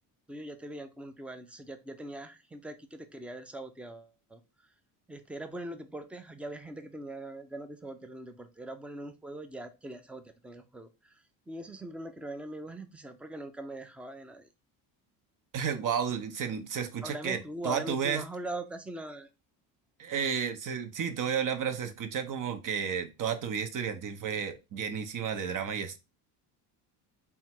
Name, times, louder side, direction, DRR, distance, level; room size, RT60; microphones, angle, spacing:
voice 1, 0.3-4.4 5.1-11.1 11.5-14.5 17.0-19.3, right 1 dB, 5° right, 7 dB, 0.5 m, -41 dB
voice 2, 15.5-18.2 20.0-26.0, right 7 dB, 40° right, 8 dB, 0.8 m, -32 dB
3.6 x 2.3 x 4.3 m, 0.27 s
supercardioid pair, 80°, 49 cm